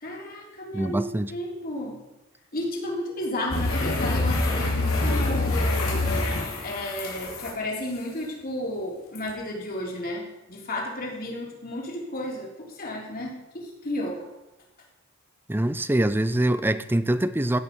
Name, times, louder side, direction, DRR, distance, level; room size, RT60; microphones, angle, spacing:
voice 1, 0.0-1.0 1.3-2.0 2.5-6.1 6.6-14.3, left 1 dB, 45° left, -1 dB, 3.4 m, -33 dB
voice 2, 0.7-1.4 15.5-17.6, right 1 dB, 10° right, 13 dB, 0.5 m, -24 dB
sound 1, 3.5-7.5 9.1-9.3, left 2 dB, 85° left, 3.5 m, -25 dB
16.0 x 8.9 x 5.3 m, 1.0 s
head